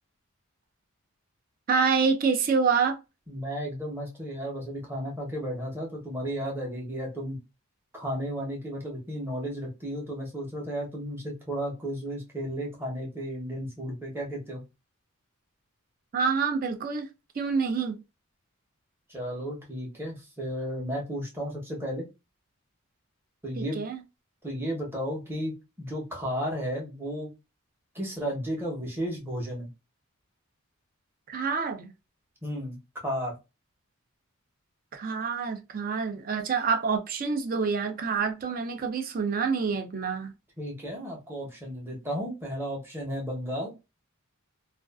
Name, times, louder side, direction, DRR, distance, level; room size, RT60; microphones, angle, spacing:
voice 1, 1.7-3.0 16.1-17.1 17.4-18.0 23.6-24.0 31.3-31.9 34.9-40.3, right 5 dB, 40° right, 0.4 m, -27 dB
voice 2, 3.3-7.4 7.9-14.6 19.1-22.1 23.4-23.8 24.4-27.3 27.9-29.7 32.4-32.8 33.0-33.4 40.6-43.7, equal, 10° right, 0.8 m, -33 dB
2.4 x 2.3 x 2.2 m
head